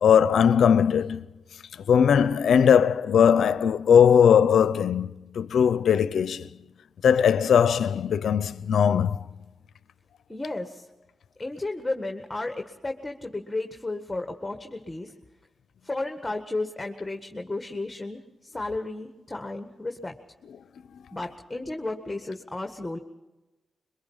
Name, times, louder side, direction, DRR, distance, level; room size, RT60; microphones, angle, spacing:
voice 1, 0.0-1.3 1.9-6.5 7.0-9.3, left 8 dB, 80° left, 0.7 m, -20 dB
voice 2, 10.3-10.9 11.4-15.1 15.8-20.1 21.1-23.0, left 2 dB, 20° left, 1.7 m, -33 dB
23.0 x 22.0 x 5.6 m
cardioid pair, 60°, 0 cm